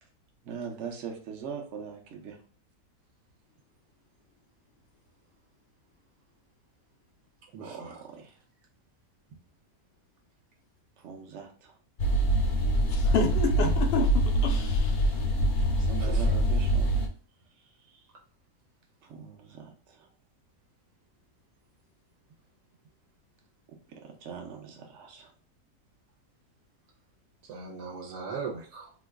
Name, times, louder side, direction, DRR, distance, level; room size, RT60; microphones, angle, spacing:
voice 1, 0.4-2.4 7.6-8.4 11.0-11.8 15.7-17.0 17.6-18.0 19.0-20.1 23.7-25.3, right 6 dB, 55° right, 1 dB, 0.9 m, -42 dB
voice 2, 7.5-8.0 16.0-16.4 27.4-28.9, right 5 dB, 85° right, -1 dB, 1.3 m, -39 dB
sound 1, 12.0-17.1, right 1 dB, 55° left, 0.9 m, -24 dB
voice 3, 12.9-15.1, left 5 dB, 75° left, 4 dB, 0.5 m, -30 dB
2.9 x 2.2 x 3.4 m, 0.41 s
omnidirectional pair, 1.7 m